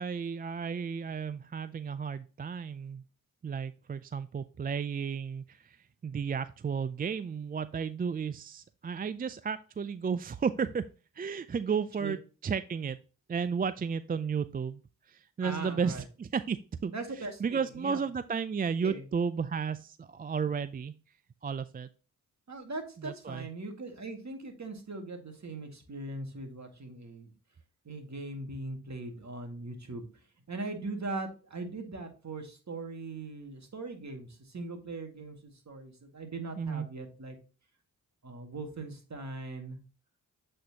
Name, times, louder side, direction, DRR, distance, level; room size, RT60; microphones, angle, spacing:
voice 1, 0.0-3.0 3.4-5.8 6.0-10.9 11.2-12.2 12.4-13.0 13.3-14.8 15.1-16.9 17.4-20.9 21.4-21.9 23.0-23.5 36.6-36.9, right 6 dB, 25° right, 13 dB, 0.3 m, -33 dB
voice 2, 15.4-16.0 16.9-18.0 18.8-19.0 22.5-27.3 27.9-37.4 38.2-39.8, right 3 dB, 45° right, 4 dB, 1.9 m, -40 dB
7.8 x 4.3 x 2.8 m, 0.35 s
cardioid pair, 45°, 37 cm